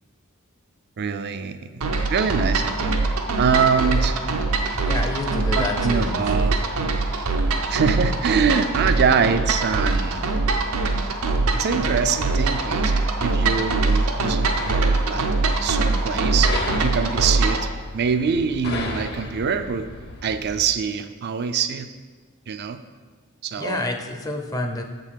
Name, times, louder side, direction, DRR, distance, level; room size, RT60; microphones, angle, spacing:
voice 1, 1.0-1.7 2.1-3.0 3.4-4.2 5.5-6.6 7.7-10.3 11.5-12.9 13.2-15.3 15.6-16.5 16.8-19.9 20.2-21.9 22.5-22.8 23.4-23.8, right 6 dB, 50° right, 10 dB, 0.4 m, -24 dB
sound 1, 1.8-17.7, right 3 dB, 80° right, 0.7 m, -23 dB
voice 2, 4.8-6.5 23.6-24.8, left 2 dB, 15° left, 4 dB, 0.5 m, -29 dB
sound 2, 14.6-20.6, left 2 dB, 50° left, 0.8 m, -35 dB
7.1 x 3.9 x 6.3 m, 1.5 s
head